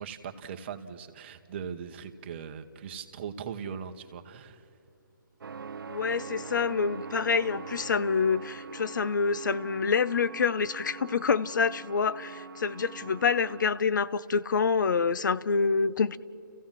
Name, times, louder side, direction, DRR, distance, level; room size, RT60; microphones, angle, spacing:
voice 1, 0.0-4.7, right 7 dB, 30° right, 1.2 m, -40 dB
sound 1, 5.4-13.8, right 5 dB, 75° right, 0.7 m, -43 dB
voice 2, 5.9-16.2, left 5 dB, 60° left, 0.7 m, -27 dB
29.5 x 15.5 x 7.6 m
hypercardioid pair, 155°, 11 cm